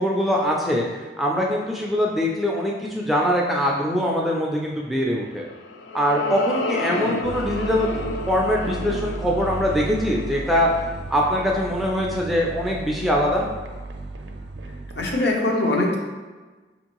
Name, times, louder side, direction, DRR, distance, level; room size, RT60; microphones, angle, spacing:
voice 1, 0.0-5.5 5.9-10.7 11.1-13.5, equal, ahead, -2 dB, 0.3 m, -23 dB
sound 1, 5.3-11.9, left 2 dB, 85° left, 0.4 m, -32 dB
sound 2, 7.2-15.2, right 2 dB, 80° right, 0.5 m, -34 dB
voice 2, 15.0-16.0, left 2 dB, 65° left, -1 dB, 0.8 m, -22 dB
5.1 x 2.6 x 2.9 m, 1.3 s
head